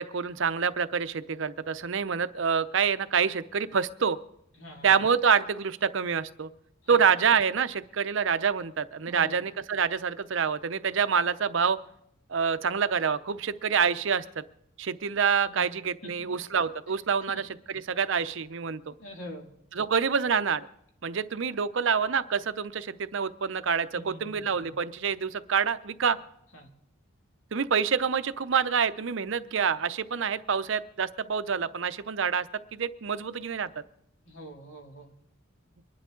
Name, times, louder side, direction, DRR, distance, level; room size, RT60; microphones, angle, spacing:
voice 1, 0.0-4.2 4.8-6.5 6.9-11.8 12.3-14.4 14.8-17.4 17.9-18.9 19.8-20.7 21.0-26.2 27.5-33.7, right 6 dB, 65° right, 13 dB, 0.6 m, -27 dB
voice 2, 4.5-4.9 6.8-7.0 9.1-9.3 15.5-15.7 16.0-16.1 19.0-19.5 23.9-24.7 26.5-26.7 34.3-35.1, equal, 65° left, 2 dB, 2.5 m, -44 dB
24.5 x 11.0 x 3.8 m, 0.76 s
head